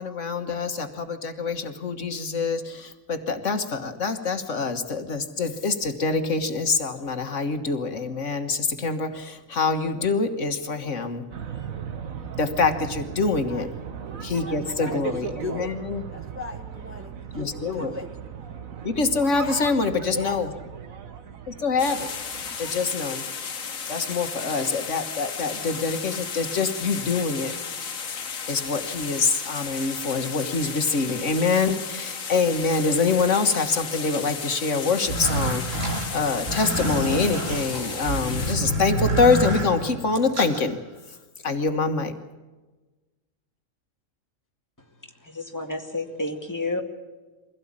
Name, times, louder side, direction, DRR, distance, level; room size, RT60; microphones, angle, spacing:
voice 1, 0.0-11.2 12.4-13.7 14.2-16.0 17.3-17.9 18.8-20.5 21.5-22.1 22.6-23.2 23.9-27.5 28.5-40.8 41.4-42.1, left 4 dB, 65° left, 7 dB, 1.7 m, -25 dB
sound 1, 11.3-22.8, right 7 dB, 90° right, 1.7 m, -37 dB
voice 2, 14.1-15.8 16.1-18.1 19.4-19.7 20.1-20.4, left 2 dB, 10° right, 5 dB, 1.1 m, -37 dB
sound 2, 21.8-38.5, left 6 dB, 85° left, 1.6 m, -34 dB
sound 3, 35.0-40.6, right 1 dB, 70° right, 3.4 m, -28 dB
voice 3, 45.2-46.8, left 2 dB, 15° left, 2 dB, 2.2 m, -30 dB
23.0 x 16.5 x 8.7 m, 1.2 s
omnidirectional pair, 1.4 m